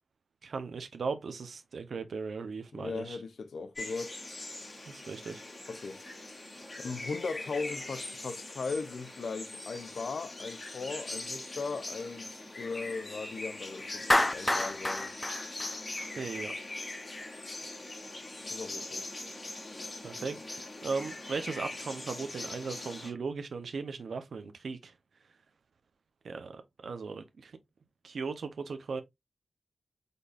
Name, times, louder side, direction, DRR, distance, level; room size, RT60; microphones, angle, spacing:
voice 1, 0.4-3.2 4.9-5.4 16.2-16.5 20.0-24.9 26.2-27.6 28.0-29.0, right 4 dB, 80° right, 0.7 m, -37 dB
voice 2, 2.7-4.2 5.7-6.0 6.8-15.1 18.5-19.1, left 4 dB, 70° left, 0.5 m, -38 dB
sound 1, 3.8-23.1, left 2 dB, 35° left, 2.6 m, -41 dB
Clapping, 14.1-16.4, left 1 dB, 15° left, 0.5 m, -28 dB
5.1 x 4.1 x 2.3 m
wide cardioid pair, 140°, 0 cm